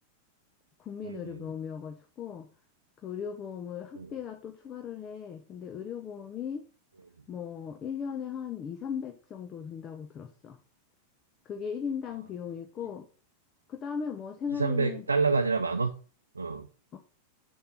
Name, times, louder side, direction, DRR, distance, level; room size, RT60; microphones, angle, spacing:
voice 1, 0.8-2.5 3.0-6.6 7.3-10.6 11.4-13.1 13.7-15.1 16.9-17.0, left 7 dB, 30° left, 0.9 m, -37 dB
voice 2, 14.6-15.9 16.4-16.7, right 4 dB, 75° right, 0.6 m, -27 dB
7.4 x 7.0 x 4.2 m
figure-of-eight pair, 90°, 0 cm